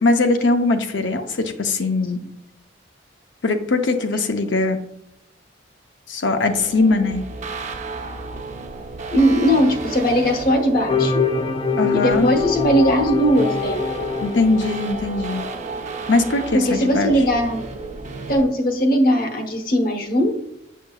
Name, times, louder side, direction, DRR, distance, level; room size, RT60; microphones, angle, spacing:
voice 1, 0.0-2.2 3.4-4.8 6.1-7.2 11.8-12.3 14.2-15.4 16.1-17.1, left 3 dB, 80° left, 7 dB, 0.7 m, -20 dB
sound 1, 6.5-18.4, right 3 dB, 40° right, 0.8 m, -32 dB
voice 2, 9.1-11.2 11.9-13.8 16.5-17.6 18.3-20.5, equal, 55° left, 4 dB, 1.0 m, -19 dB
sound 2, 10.9-15.5, left 4 dB, 30° left, 0.4 m, -24 dB
6.6 x 6.4 x 2.3 m, 0.83 s
head